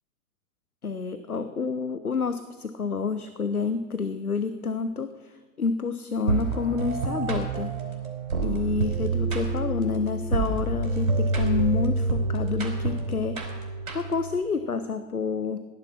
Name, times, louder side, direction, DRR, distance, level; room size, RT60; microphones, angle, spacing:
voice 1, 0.8-7.8 8.4-13.4 13.9-15.6, left 5 dB, 90° left, 11 dB, 0.9 m, -29 dB
sound 1, 6.3-14.4, right 3 dB, 75° right, 4.8 m, -27 dB
17.5 x 11.0 x 5.9 m, 1.4 s
figure-of-eight pair, 105°, 43 cm